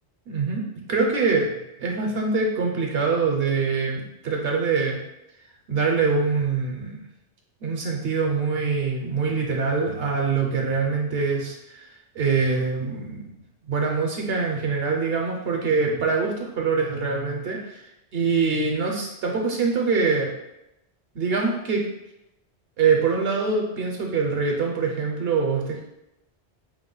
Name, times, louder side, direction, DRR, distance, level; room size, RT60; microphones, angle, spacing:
voice 1, 0.3-1.5 1.8-5.0 5.7-7.1 7.6-13.3 13.7-20.3 21.1-21.8 22.8-25.8, right 4 dB, 70° right, 0 dB, 0.8 m, -24 dB
4.7 x 2.1 x 3.7 m, 0.89 s
omnidirectional pair, 1.1 m